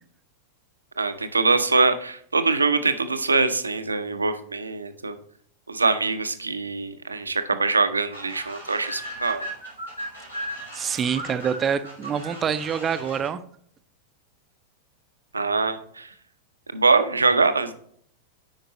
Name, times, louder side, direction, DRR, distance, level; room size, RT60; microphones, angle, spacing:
voice 1, 1.0-5.2 5.7-9.4 15.3-16.1 16.7-17.7, right 3 dB, 80° right, 10 dB, 0.6 m, -23 dB
sound 1, 8.1-13.3, right 1 dB, 85° left, 2.6 m, -36 dB
voice 2, 10.7-13.4, right 7 dB, 25° right, 12 dB, 0.5 m, -26 dB
8.7 x 5.2 x 2.9 m, 0.62 s
figure-of-eight pair, 90°, 0 cm